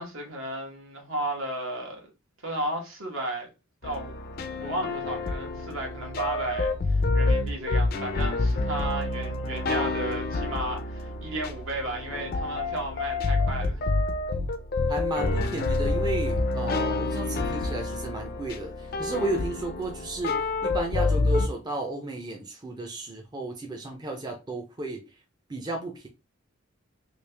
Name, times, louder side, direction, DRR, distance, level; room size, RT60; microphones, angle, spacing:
voice 1, 0.0-2.1 2.4-3.5 3.8-4.1 4.6-13.8, right 1 dB, 65° right, 1.2 m, -34 dB
sound 1, 3.8-21.5, left 2 dB, 45° left, 0.4 m, -28 dB
voice 2, 9.7-10.0 14.9-25.0 25.5-26.1, right 2 dB, 20° right, 0.5 m, -33 dB
3.2 x 2.8 x 3.3 m
head